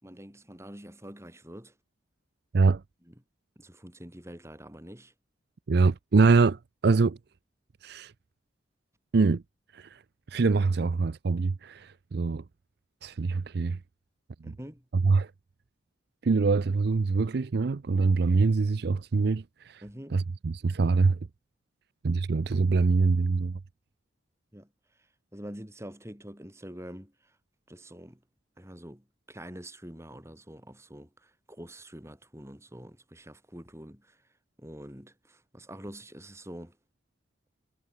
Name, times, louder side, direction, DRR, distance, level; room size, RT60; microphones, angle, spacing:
voice 1, 0.0-1.8 3.0-3.2 3.6-5.1 14.4-14.9 19.8-20.2 24.5-27.4 27.7-28.2 28.6-34.3 34.6-36.8, equal, 15° right, 6.1 m, -46 dB
voice 2, 5.7-7.2 7.8-8.1 9.1-9.4 9.7-10.0 10.3-12.4 13.0-13.8 15.0-15.3 16.2-19.8 20.1-21.2 22.0-23.6, right 4 dB, 60° right, 0.5 m, -24 dB
head